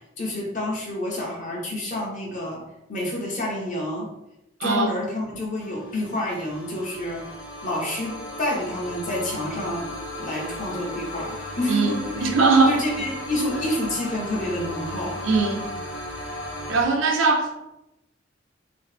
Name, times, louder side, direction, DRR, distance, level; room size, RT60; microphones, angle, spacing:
voice 1, 0.2-2.6 2.9-4.1 4.6-7.3 7.6-9.9 10.2-12.3 12.7-15.2, left 1 dB, 40° left, -2 dB, 0.9 m, -28 dB
voice 2, 4.6-4.9 11.7-12.8 15.2-15.7 16.7-17.7, right 4 dB, 80° right, 2 dB, 0.6 m, -21 dB
sound 1, 5.6-16.8, left 1 dB, 80° left, 1.3 m, -35 dB
3.1 x 2.8 x 3.3 m, 0.90 s
head